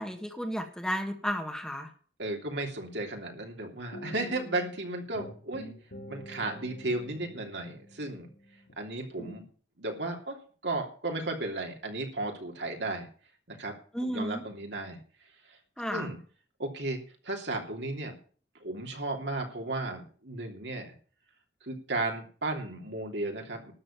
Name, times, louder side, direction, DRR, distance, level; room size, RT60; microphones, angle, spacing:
voice 1, 0.0-1.9 13.9-14.4 15.8-16.1, equal, 5° left, 4 dB, 1.6 m, -33 dB
voice 2, 2.2-5.7 6.1-8.3 8.8-9.4 9.8-10.4 10.6-13.1 13.5-13.7 14.1-15.0 15.5-15.6 15.9-16.2 16.6-18.1 18.6-20.9 21.6-23.7, right 2 dB, 70° right, 2 dB, 3.1 m, -34 dB
sound 1, 3.9-4.8 5.1-8.7 9.2-9.4, equal, 75° left, 4.4 m, -46 dB
13.0 x 6.6 x 9.0 m, 0.43 s
head